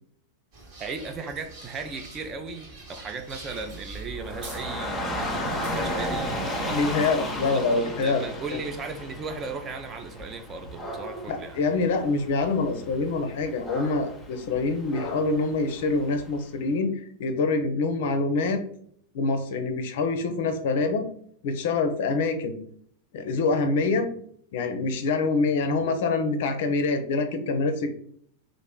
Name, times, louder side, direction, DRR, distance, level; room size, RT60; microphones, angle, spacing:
sound 1, 0.5-7.3, right 3 dB, 45° right, 1.1 m, -43 dB
voice 1, 0.8-7.0 7.5-7.6 8.0-11.6, right 4 dB, 25° right, 0.4 m, -36 dB
Dog / Rain, 4.2-16.3, left 1 dB, 10° left, 0.7 m, -34 dB
voice 2, 6.7-8.3 8.5-8.6 11.3-18.6 19.1-21.0 21.4-22.5 23.1-24.1 24.5-27.9, left 3 dB, 55° left, 0.5 m, -25 dB
3.0 x 2.4 x 3.6 m
figure-of-eight pair, 90°, 0 cm